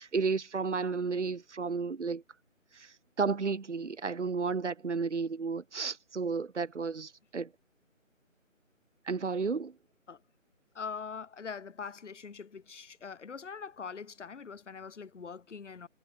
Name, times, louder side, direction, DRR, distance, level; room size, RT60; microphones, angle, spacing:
voice 1, 0.0-2.2 2.7-7.5 9.1-9.7, right 4 dB, 60° right, 0.9 m, -32 dB
voice 2, 10.7-15.9, left 6 dB, 60° left, 0.7 m, -43 dB
figure-of-eight pair, 160°, 41 cm